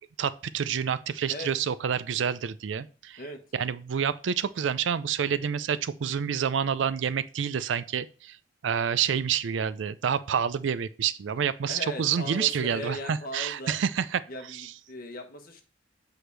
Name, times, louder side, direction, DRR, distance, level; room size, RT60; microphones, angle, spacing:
voice 1, 0.2-3.2 3.5-8.4 8.6-14.2 14.6-14.7, right 7 dB, 75° right, 0.4 m, -28 dB
voice 2, 11.7-13.8 14.3-15.6, left 1 dB, 50° left, 1.3 m, -38 dB
7.9 x 4.8 x 3.3 m
head